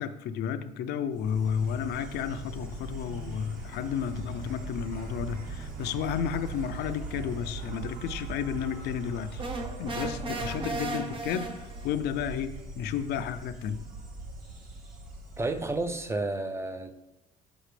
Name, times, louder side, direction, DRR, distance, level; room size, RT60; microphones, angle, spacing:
voice 1, 0.0-9.4 9.8-13.8, left 8 dB, 75° left, 9 dB, 0.5 m, -32 dB
Insect, 1.1-16.2, right 3 dB, 55° right, 1.3 m, -41 dB
sound 1, 9.4-12.0, right 2 dB, 30° right, 0.8 m, -35 dB
voice 2, 15.4-16.9, right 2 dB, 15° right, 8 dB, 0.4 m, -31 dB
6.2 x 5.8 x 3.2 m, 0.92 s
cardioid pair, 110°, 17 cm